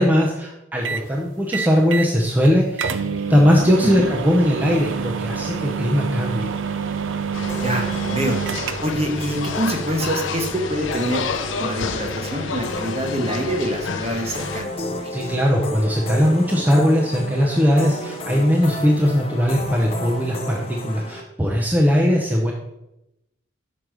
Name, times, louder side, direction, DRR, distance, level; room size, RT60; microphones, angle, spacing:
voice 1, 0.0-3.0 3.3-6.5 15.1-22.5, equal, 10° right, -2 dB, 0.6 m, -19 dB
sound 1, 0.9-1.1 1.5-2.1 2.4-2.5 2.8-9.1, right 6 dB, 80° right, 0.5 m, -27 dB
sound 2, 7.3-14.6, left 4 dB, 80° left, 0.6 m, -29 dB
sound 3, 7.5-21.2, left 1 dB, 30° left, 0.7 m, -33 dB
voice 2, 7.5-8.4 8.8-15.2, right 1 dB, 30° right, 3 dB, 1.0 m, -26 dB
6.2 x 5.2 x 4.7 m, 0.89 s
head